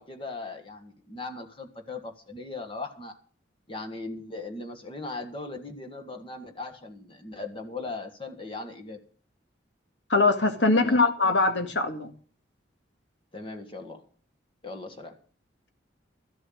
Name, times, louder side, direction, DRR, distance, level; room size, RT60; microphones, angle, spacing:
voice 1, 0.0-3.2 3.7-9.0 10.7-11.0 13.3-14.0 14.6-15.2, left 3 dB, 25° left, 4 dB, 1.6 m, -38 dB
voice 2, 10.1-12.1, left 3 dB, 65° left, 6 dB, 2.0 m, -22 dB
13.5 x 7.7 x 7.9 m, 0.42 s
head